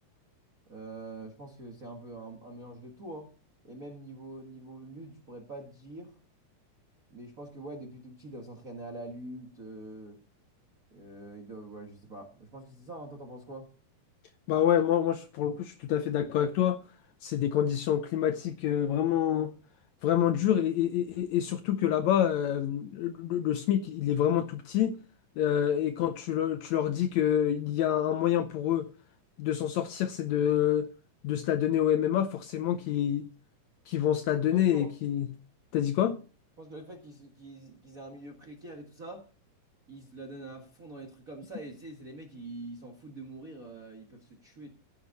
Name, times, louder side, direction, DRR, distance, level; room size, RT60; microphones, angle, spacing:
voice 1, 0.7-3.3 3.6-6.1 7.1-10.2 10.9-13.7 34.5-34.9 36.6-39.3 39.9-44.7, right 2 dB, 40° right, 1.3 m, -44 dB
voice 2, 14.5-16.8 17.2-19.5 20.0-25.0 25.4-28.9 29.4-30.9 31.2-33.3 33.9-35.3 35.7-36.2, left 10 dB, 80° left, 1.6 m, -27 dB
15.0 x 8.1 x 4.1 m
omnidirectional pair, 4.0 m